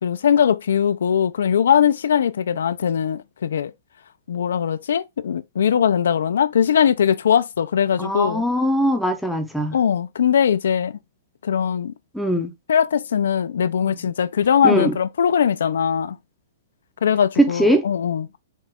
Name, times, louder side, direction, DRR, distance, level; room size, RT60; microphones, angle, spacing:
voice 1, 0.0-3.7 4.3-8.4 9.7-11.0 11.4-11.9 12.7-16.2 17.0-18.3, left 8 dB, 80° left, 0.5 m, -20 dB
voice 2, 8.0-9.7 12.1-12.5 14.6-14.9 17.4-17.8, equal, ahead, 0.6 m, -20 dB
5.5 x 2.4 x 3.6 m
hypercardioid pair, 170°, 0 cm